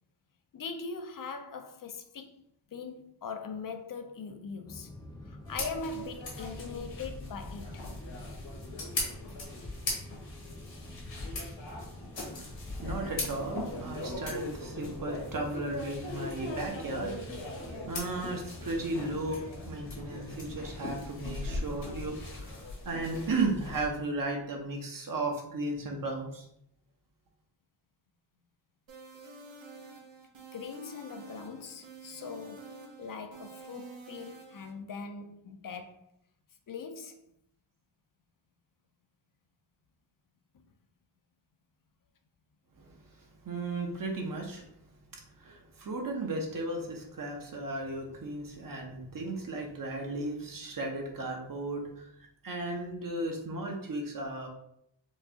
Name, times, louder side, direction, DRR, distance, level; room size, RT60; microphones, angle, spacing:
voice 1, 0.5-2.4 2.7-7.9 30.5-36.0 36.7-37.2 40.5-40.7, left 4 dB, 50° left, 0.5 m, -41 dB
sound 1, 4.7-22.6, left 1 dB, 10° left, 0.7 m, -47 dB
sound 2, 5.5-23.9, left 2 dB, 75° left, 1.4 m, -39 dB
voice 2, 12.3-26.5 42.8-44.7 45.1-54.5, right 2 dB, 45° right, 0.8 m, -35 dB
sound 3, 28.9-34.7, right 3 dB, 80° right, 1.0 m, -48 dB
4.6 x 2.3 x 2.8 m
wide cardioid pair, 130°, 45 cm